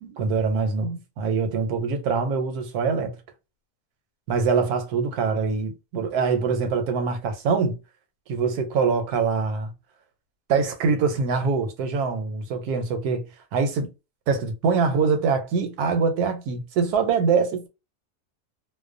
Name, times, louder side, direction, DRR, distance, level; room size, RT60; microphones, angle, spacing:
voice 1, 0.0-3.2 4.3-7.8 8.3-9.7 10.5-13.3 13.5-13.9 14.3-17.7, right 5 dB, 85° right, 1.1 m, -24 dB
2.6 x 2.1 x 2.4 m
omnidirectional pair, 1.6 m